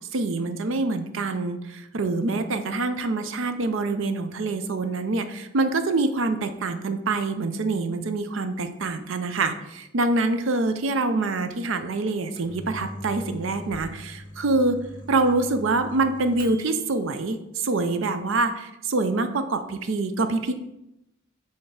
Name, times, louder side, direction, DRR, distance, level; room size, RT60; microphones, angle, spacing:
voice 1, 0.1-14.8 15.1-17.4 17.6-20.5, right 3 dB, 65° right, 9 dB, 0.5 m, -25 dB
Microwave oven, 12.1-16.9, equal, 20° left, 0.7 m, -42 dB
5.4 x 3.5 x 5.7 m, 0.88 s
head